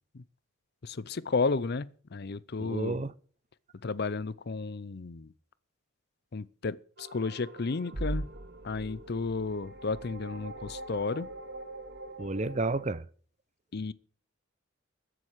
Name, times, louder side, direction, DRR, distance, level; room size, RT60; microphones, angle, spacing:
voice 1, 0.8-3.0 3.8-5.3 6.3-8.3 8.6-11.3 13.7-13.9, left 4 dB, 50° left, 0.6 m, -33 dB
voice 2, 2.6-3.1 12.2-13.0, right 2 dB, 35° right, 0.6 m, -31 dB
sound 1, 7.0-12.8, right 2 dB, 55° right, 1.3 m, -41 dB
14.5 x 7.8 x 7.3 m
head